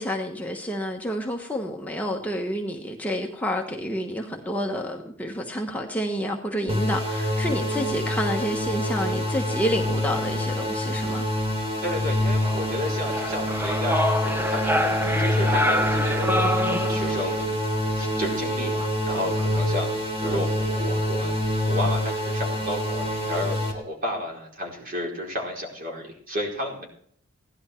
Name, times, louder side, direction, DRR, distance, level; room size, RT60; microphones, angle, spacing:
voice 1, 0.0-11.3, equal, 5° left, 1 dB, 1.2 m, -29 dB
sound 1, 6.7-23.7, equal, 25° right, 3.1 m, -26 dB
voice 2, 11.8-17.5 18.0-26.8, left 1 dB, 45° right, -1 dB, 4.8 m, -32 dB
sound 2, 12.4-17.4, left 1 dB, 10° right, 0.7 m, -26 dB
16.5 x 11.5 x 4.5 m, 0.63 s
head